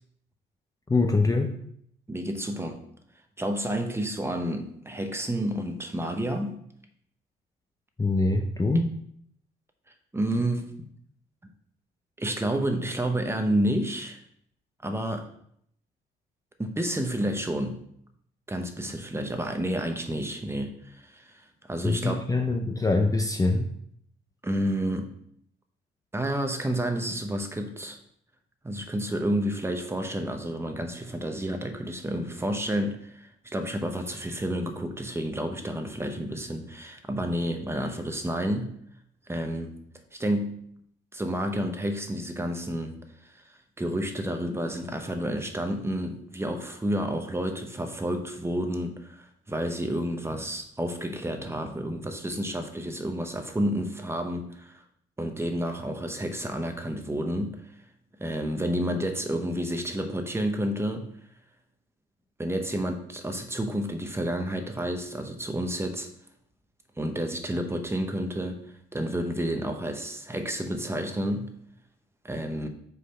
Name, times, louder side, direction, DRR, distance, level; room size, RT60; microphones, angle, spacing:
voice 1, 0.9-1.5 8.0-8.9 21.8-23.7, left 3 dB, 15° left, 4 dB, 0.6 m, -24 dB
voice 2, 2.1-2.8 3.4-6.6 10.1-10.7 12.2-14.2 14.8-15.3 16.6-17.8 18.5-22.3 24.4-25.1 26.1-28.0 28.6-38.7 39.3-39.7 40.2-40.6 41.1-42.9 43.5-54.8 55.2-57.6 58.2-61.1 62.4-66.1 67.0-71.5 72.2-72.7, right 1 dB, 10° right, 5 dB, 0.9 m, -30 dB
5.3 x 4.0 x 5.5 m, 0.68 s
cardioid pair, 90°, 20 cm